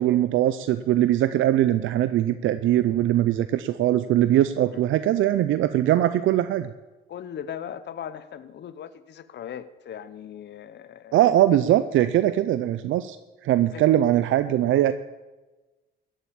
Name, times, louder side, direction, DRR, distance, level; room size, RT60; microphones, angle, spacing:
voice 1, 0.0-6.7 11.1-13.2 13.4-14.9, right 12 dB, 80° right, 12 dB, 0.6 m, -21 dB
voice 2, 7.1-11.2 12.3-12.4 13.7-14.0, left 9 dB, 60° left, 13 dB, 1.0 m, -39 dB
15.5 x 7.7 x 8.6 m, 1.2 s
cardioid pair, 90°, 20 cm